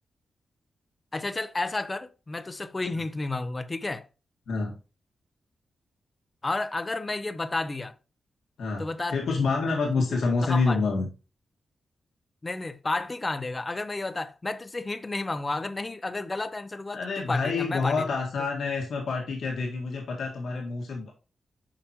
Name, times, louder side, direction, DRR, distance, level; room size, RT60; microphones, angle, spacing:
voice 1, 1.1-4.0 6.4-7.9 8.8-9.2 10.0-10.8 12.4-18.0, left 2 dB, 20° left, 0.5 m, -31 dB
voice 2, 8.6-11.1 16.9-21.1, left 4 dB, 70° left, 1.8 m, -27 dB
8.7 x 5.8 x 3.0 m
wide cardioid pair, 170°, 0 cm